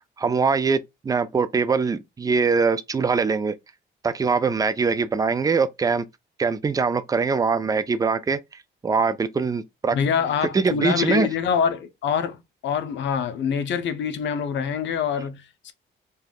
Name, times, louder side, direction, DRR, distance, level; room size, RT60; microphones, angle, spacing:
voice 1, 0.2-3.5 4.0-6.1 6.4-8.4 8.8-10.0 10.5-11.3, right 5 dB, 20° right, 0.3 m, -22 dB
voice 2, 9.9-15.7, left 7 dB, 65° left, 0.5 m, -25 dB
3.4 x 2.3 x 2.2 m
cardioid pair, 90°, 20 cm